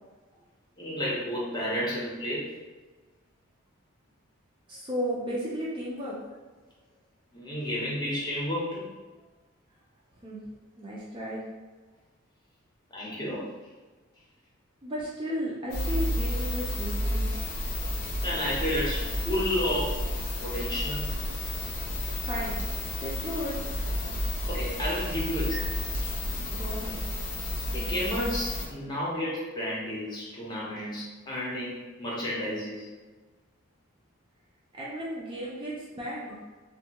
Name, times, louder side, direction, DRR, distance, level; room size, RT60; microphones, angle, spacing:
voice 1, 0.8-2.5 7.3-8.9 12.9-13.5 18.2-20.0 20.4-21.2 24.5-26.1 27.7-32.9, equal, 20° left, -6 dB, 0.6 m, -31 dB
voice 2, 4.7-6.2 10.2-10.4 10.8-11.4 14.8-17.3 22.0-22.6 23.0-23.7 26.5-27.0 34.8-36.4, equal, 20° right, -6 dB, 0.4 m, -34 dB
sound 1, 15.7-28.7, left 1 dB, 65° left, 0.6 m, -31 dB
2.6 x 2.3 x 2.8 m, 1.3 s
head